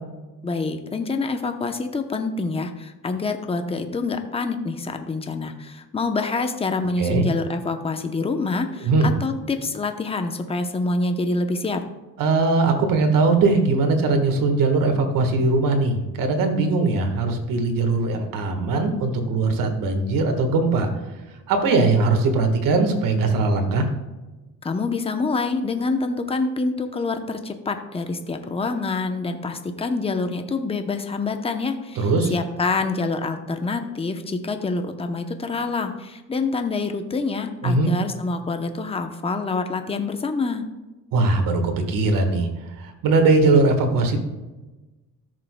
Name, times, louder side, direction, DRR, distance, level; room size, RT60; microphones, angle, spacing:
voice 1, 0.4-8.9 9.2-11.8 24.6-40.7, left 3 dB, 15° left, 6 dB, 0.7 m, -26 dB
voice 2, 12.2-20.9 21.5-23.9 31.9-32.3 37.6-37.9 41.1-42.5 42.8-44.2, right 3 dB, 80° right, 5 dB, 1.5 m, -20 dB
13.5 x 6.6 x 2.2 m, 1.1 s
cardioid pair, 115°, 33 cm